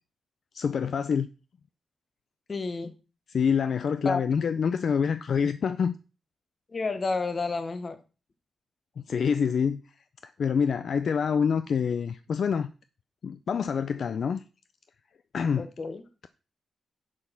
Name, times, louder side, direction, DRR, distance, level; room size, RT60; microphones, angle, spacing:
voice 1, 0.5-1.3 3.3-6.0 9.1-9.8 10.2-12.7 13.2-14.4 15.3-15.7, left 6 dB, 55° left, 0.4 m, -26 dB
voice 2, 2.5-2.9 4.0-4.2 6.7-8.0 15.6-16.0, left 3 dB, 30° left, 1.0 m, -30 dB
7.2 x 6.3 x 5.7 m
wide cardioid pair, 150°, 0 cm